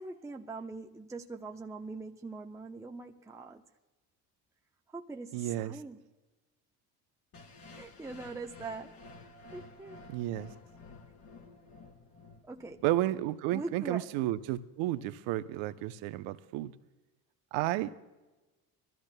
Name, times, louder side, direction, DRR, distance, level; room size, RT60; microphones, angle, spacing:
voice 1, 0.0-3.6 4.9-6.0 7.7-9.0 9.5-10.0 12.4-12.8 13.5-14.1, right 3 dB, 5° right, 0.7 m, -42 dB
voice 2, 5.3-5.8 10.1-10.5 12.8-16.7 17.5-17.9, right 15 dB, 65° right, 0.8 m, -32 dB
sound 1, 7.3-13.3, left 3 dB, 50° left, 2.6 m, -52 dB
24.5 x 13.5 x 2.2 m
hypercardioid pair, 70°, 49 cm